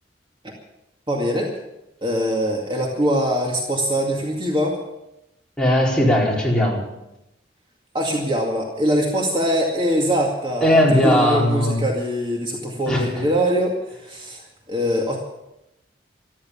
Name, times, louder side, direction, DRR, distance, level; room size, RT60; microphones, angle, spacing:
voice 1, 1.1-1.5 2.0-4.8 7.9-13.8 14.0-15.2, equal, 30° right, -1 dB, 2.2 m, -23 dB
voice 2, 5.6-6.8 10.6-11.9 12.9-13.2, left 1 dB, 5° left, -4 dB, 4.4 m, -18 dB
14.0 x 13.5 x 7.3 m, 0.88 s
head